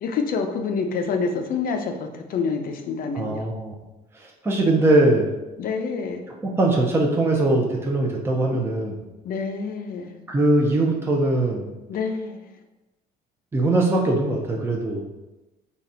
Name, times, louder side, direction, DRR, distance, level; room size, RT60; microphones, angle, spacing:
voice 1, 0.0-3.5 5.6-6.2 8.5-8.6 9.2-10.1 11.9-12.4, left 5 dB, 60° left, 5 dB, 0.6 m, -27 dB
voice 2, 3.1-3.8 4.1-5.4 6.4-9.0 10.3-11.7 13.5-15.1, right 2 dB, 15° right, -1 dB, 0.7 m, -21 dB
4.0 x 2.4 x 4.1 m, 1.0 s
cardioid pair, 110°, 17 cm